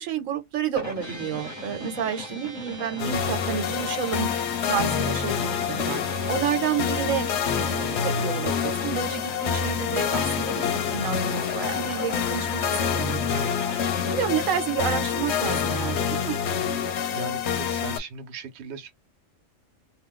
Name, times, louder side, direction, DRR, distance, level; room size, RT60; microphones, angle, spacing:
voice 1, 0.0-4.3 4.7-16.4, right 8 dB, 90° right, 1.1 m, -30 dB
sound 1, 0.8-16.2, left 3 dB, 15° left, 0.8 m, -39 dB
sound 2, 1.0-14.5, right 3 dB, 40° right, 0.4 m, -46 dB
sound 3, 3.0-18.0, left 7 dB, 65° left, 0.8 m, -27 dB
voice 2, 17.1-18.9, right 5 dB, 60° right, 0.9 m, -37 dB
2.4 x 2.2 x 3.5 m
omnidirectional pair, 1.3 m